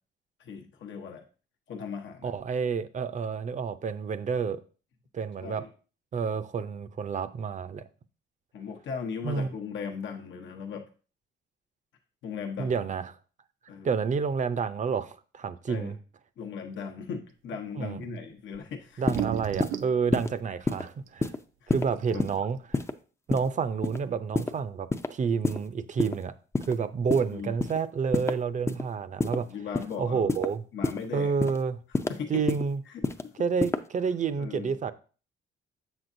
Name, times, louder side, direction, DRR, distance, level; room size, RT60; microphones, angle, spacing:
voice 1, 0.4-1.2 1.7-2.3 5.4-5.7 8.5-10.8 12.2-12.9 13.7-13.9 15.7-15.9 16.4-19.1 21.6-21.7 22.1-22.3 27.3-27.5 29.2-30.3 30.7-31.3 31.9-32.4 32.8-33.3 34.4-34.7, left 6 dB, 70° left, 0.9 m, -38 dB
voice 2, 2.2-4.6 5.1-5.6 6.1-7.8 9.2-9.5 12.6-13.0 13.8-16.0 17.8-18.0 19.0-21.3 21.7-22.8 23.3-26.3 26.7-29.5 30.0-30.6 31.1-31.8 32.3-32.8 33.4-34.9, right 6 dB, 40° right, 0.5 m, -29 dB
sound 1, 18.5-18.6 19.0-20.0 21.1-21.2 21.7-21.8 22.0-22.5, right 12 dB, 85° right, 0.5 m, -34 dB
sound 2, 19.1-19.2 19.6-19.8 20.1-20.3 20.7-20.8 21.2-21.4 21.7-21.9 22.2-22.4 22.7-22.9 23.3-23.5 23.8-24.0 24.4-24.5 24.9-25.1 25.4-25.6 26.0-26.2 26.5-26.7 27.1-27.2 27.6-27.8 28.1-28.3 28.7-28.8 29.2-29.4 29.7-29.9 30.3-30.5 30.8-31.0 31.4-31.6 31.9-32.1 32.5-32.6 33.0-33.2 33.6-33.8, left 3 dB, 15° left, 0.4 m, -27 dB
7.2 x 6.1 x 2.6 m
cardioid pair, 90°, 20 cm